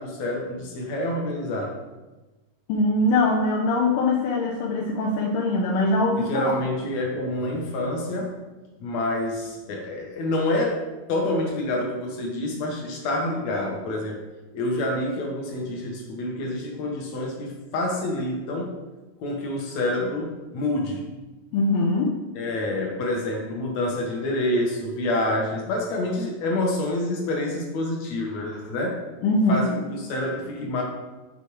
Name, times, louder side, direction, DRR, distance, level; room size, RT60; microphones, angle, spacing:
voice 1, 0.0-1.8 6.2-8.4 8.8-10.8 11.1-14.2 14.5-18.8 19.2-21.0 22.4-29.0 29.5-30.8, left 1 dB, 60° left, 0 dB, 2.2 m, -27 dB
voice 2, 2.7-6.5 21.5-22.2 29.2-29.8, left 2 dB, 85° left, -2 dB, 2.4 m, -22 dB
6.9 x 4.3 x 4.7 m, 1.2 s
omnidirectional pair, 3.8 m